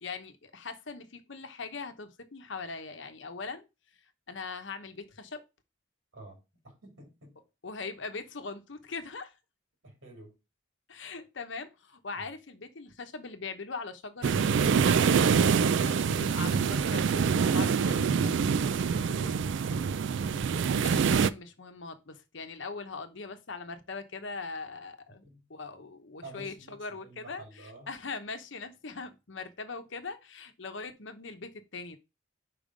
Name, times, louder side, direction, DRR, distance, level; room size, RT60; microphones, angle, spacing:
voice 1, 0.0-3.7 4.3-5.4 7.6-9.3 10.9-15.3 15.8-18.3 20.8-32.0, left 4 dB, 65° left, 0.9 m, -41 dB
voice 2, 6.1-7.4 9.8-10.4 12.1-12.2 18.5-20.8 25.2-25.4 26.2-27.9, right 1 dB, 85° right, 3.3 m, -49 dB
sound 1, 14.2-21.3, right 6 dB, 65° right, 0.3 m, -25 dB
5.3 x 4.8 x 5.0 m
head